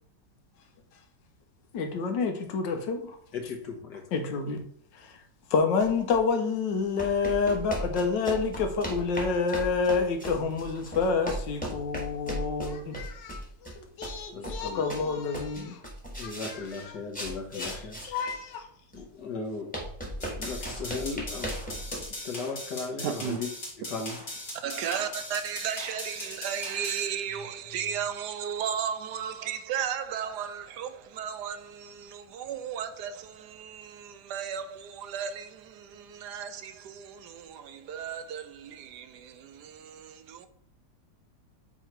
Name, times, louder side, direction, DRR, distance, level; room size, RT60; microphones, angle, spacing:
voice 1, 1.7-3.2 4.1-4.6 4.9-5.2 5.5-15.8 16.2-18.7, left 5 dB, 90° left, 1.6 m, -29 dB
voice 2, 3.3-4.0 14.3-15.2 16.2-18.0 18.9-19.7 20.4-21.5 22.2-23.5 23.9-24.2, left 4 dB, 70° left, 1.8 m, -36 dB
sound 1, 5.8-6.2 7.0-15.1 15.3-18.5 18.9-19.0 19.7-22.1, right 1 dB, 5° left, 1.3 m, -37 dB
sound 2, 20.2-27.1, left 1 dB, 45° left, 2.5 m, -40 dB
voice 3, 23.0-23.4 24.6-40.5, right 8 dB, 75° right, 1.1 m, -35 dB
7.8 x 3.0 x 4.6 m
omnidirectional pair, 1.9 m